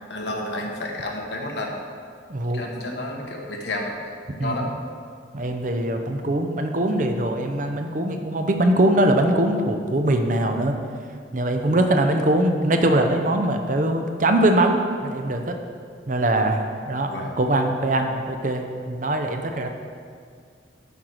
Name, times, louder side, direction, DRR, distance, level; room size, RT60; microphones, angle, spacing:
voice 1, 0.1-1.7 2.5-4.0 4.4-4.7 17.1-17.3, left 1 dB, 70° left, 0 dB, 1.3 m, -30 dB
voice 2, 2.3-2.6 4.3-4.5 5.3-10.8 11.3-15.6 16.1-19.7, right 1 dB, 45° right, 5 dB, 0.6 m, -22 dB
8.9 x 4.6 x 6.3 m, 2.1 s
head